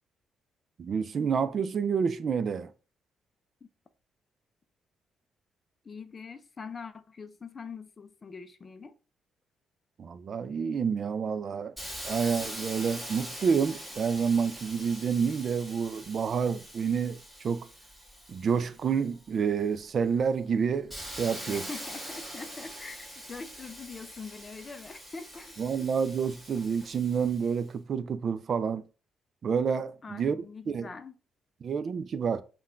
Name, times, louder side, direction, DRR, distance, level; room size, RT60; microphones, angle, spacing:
voice 1, 0.8-2.7 10.0-11.8 12.0-17.7 18.3-21.7 25.6-28.8 29.4-30.4 30.7-30.9 31.6-32.4, right 6 dB, 50° right, 0.3 m, -29 dB
voice 2, 5.8-8.9 21.5-25.6 30.0-31.1, left 4 dB, 35° left, 0.4 m, -43 dB
Hiss, 11.8-19.3 19.8-27.6, equal, 5° right, 1.5 m, -43 dB
5.6 x 2.2 x 2.5 m
cardioid pair, 90°, 0 cm